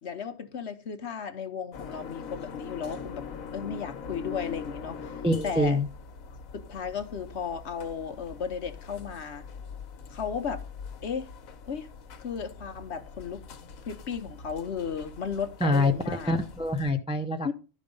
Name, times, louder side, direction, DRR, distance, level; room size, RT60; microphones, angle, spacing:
voice 1, 0.0-3.2 3.5-5.1 5.4-5.8 6.5-9.5 10.1-10.6 11.0-11.3 11.6-11.9 12.2-13.4 13.8-16.3 17.4-17.5, left 6 dB, 55° left, 1.0 m, -34 dB
sound 1, 1.7-16.9, left 5 dB, 75° left, 1.3 m, -43 dB
voice 2, 5.2-5.9 15.6-17.5, left 1 dB, 5° right, 0.5 m, -26 dB
11.5 x 5.2 x 5.3 m
omnidirectional pair, 1.4 m